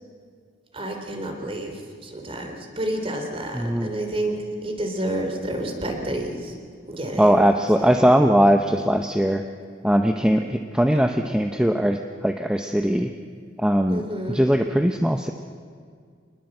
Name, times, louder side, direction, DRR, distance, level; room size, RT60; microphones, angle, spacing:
voice 1, 0.7-6.6 6.9-7.3 13.9-14.4, right 1 dB, 30° right, 4 dB, 3.3 m, -29 dB
voice 2, 3.5-3.9 7.2-9.4 9.8-13.1 13.6-15.3, equal, 5° right, 5 dB, 0.7 m, -20 dB
25.5 x 20.0 x 7.9 m, 2.1 s
head